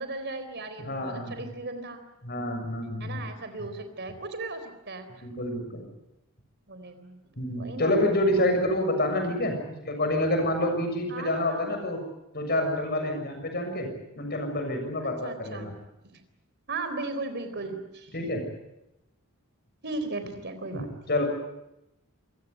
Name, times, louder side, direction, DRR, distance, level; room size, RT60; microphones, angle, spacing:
voice 1, 0.0-2.0 3.0-5.1 6.7-7.2 7.5-7.9 11.1-11.7 15.0-15.7 16.7-18.2 19.8-20.9, right 3 dB, 50° right, 9 dB, 4.0 m, -36 dB
voice 2, 0.8-1.5 2.2-3.2 5.2-5.8 7.4-9.6 9.8-12.0 12.3-13.9 14.2-15.7 18.1-18.4 20.7-21.2, left 1 dB, 45° left, 4 dB, 7.0 m, -28 dB
27.5 x 17.0 x 9.6 m, 0.90 s
head